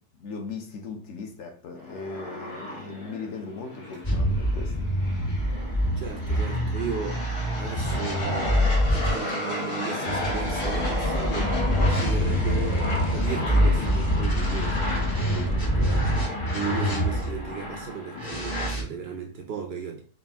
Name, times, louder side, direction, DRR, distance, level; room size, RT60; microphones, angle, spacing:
voice 1, 0.1-4.7 15.3-15.7, left 4 dB, 60° left, 0.9 m, -38 dB
sound 1, 1.8-18.7, left 2 dB, 85° left, 1.9 m, -33 dB
sound 2, 4.0-9.1 10.1-17.4 18.1-18.8, equal, 25° left, 0.5 m, -25 dB
voice 2, 6.0-7.2 7.5-16.0 16.5-20.0, right 6 dB, 65° right, 0.6 m, -36 dB
4.2 x 2.5 x 3.4 m
omnidirectional pair, 1.6 m